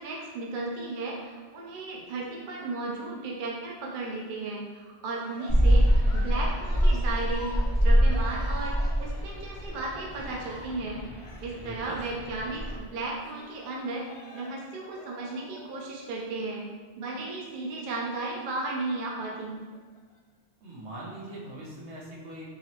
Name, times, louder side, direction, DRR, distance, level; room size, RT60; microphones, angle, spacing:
voice 1, 0.0-8.7 9.0-11.0 11.4-14.0 14.3-16.6 17.0-19.6, right 3 dB, 55° right, -3 dB, 0.7 m, -35 dB
Cheering, 5.0-16.7 17.9-18.8 19.5-20.2, left 1 dB, 60° left, 0.3 m, -48 dB
sound 1, 5.5-12.8, equal, 5° left, 0.6 m, -25 dB
voice 2, 11.5-12.0 20.6-22.5, right 1 dB, 85° right, -6 dB, 1.2 m, -42 dB
4.0 x 2.9 x 2.9 m, 1.4 s
omnidirectional pair, 1.1 m